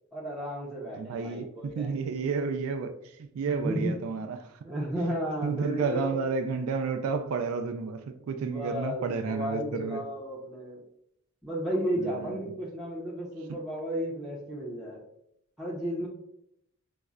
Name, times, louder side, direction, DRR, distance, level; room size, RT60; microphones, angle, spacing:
voice 1, 0.1-2.2 3.5-4.0 4.6-6.2 8.4-10.8 11.4-15.0 15.6-16.1, equal, ahead, 0.6 m, -33 dB
voice 2, 0.9-4.6 5.4-10.0 12.0-12.4 13.5-13.6, right 5 dB, 80° right, 0.3 m, -31 dB
5.2 x 2.0 x 2.3 m
head